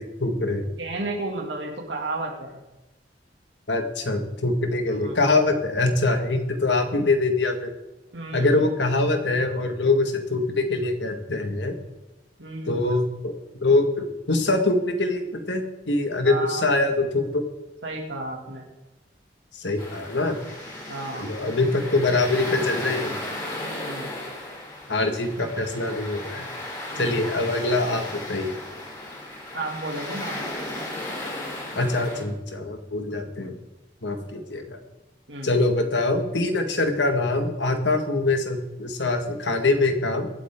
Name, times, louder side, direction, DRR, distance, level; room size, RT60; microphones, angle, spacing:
voice 1, 0.0-0.7 3.7-7.7 8.3-11.7 12.7-13.3 13.6-17.4 19.6-20.4 21.1-23.2 24.9-26.5 27.0-28.5 31.8-33.5 34.0-34.8 35.4-40.3, left 2 dB, 75° left, 5 dB, 1.8 m, -24 dB
voice 2, 0.8-2.5 4.9-5.2 8.1-8.6 12.4-12.9 16.2-16.8 17.8-18.6 20.9-21.3 23.6-24.1 26.9-27.3 29.5-30.4 33.4-33.6 35.3-35.6, right 2 dB, 90° right, 0 dB, 2.3 m, -33 dB
sound 1, 19.8-32.2, left 1 dB, 25° left, 5.3 m, -35 dB
23.0 x 8.8 x 3.7 m, 1.0 s
head